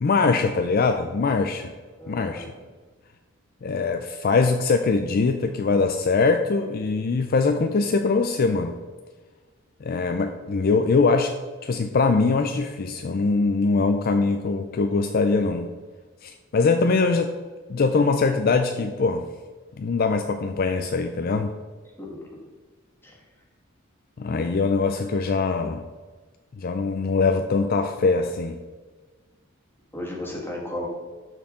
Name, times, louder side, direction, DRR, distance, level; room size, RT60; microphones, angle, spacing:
voice 1, 0.0-1.7 2.1-2.5 3.6-8.8 9.8-11.3 11.6-15.7 16.2-17.3 17.7-19.3 19.8-21.5 24.2-25.8 26.6-28.6, left 4 dB, 50° left, 6 dB, 0.4 m, -22 dB
voice 2, 2.0-2.5 22.0-22.2 23.0-23.2 29.9-30.9, left 1 dB, 10° left, -3 dB, 1.8 m, -34 dB
12.0 x 4.6 x 3.7 m, 1.4 s
head